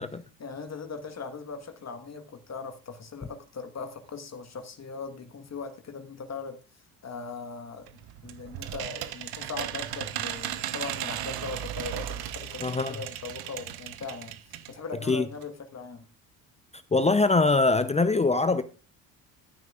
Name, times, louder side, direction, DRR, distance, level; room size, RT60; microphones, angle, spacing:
voice 1, 0.4-7.9 8.2-16.0, left 4 dB, 35° left, 1.4 m, -40 dB
sound 1, 7.9-14.8 15.1-15.2 15.4-15.5, right 12 dB, 55° right, 1.0 m, -36 dB
voice 2, 12.6-13.0 15.1-15.3 16.9-18.6, left 3 dB, 15° left, 0.6 m, -23 dB
14.5 x 9.4 x 2.4 m
hypercardioid pair, 60°, 45 cm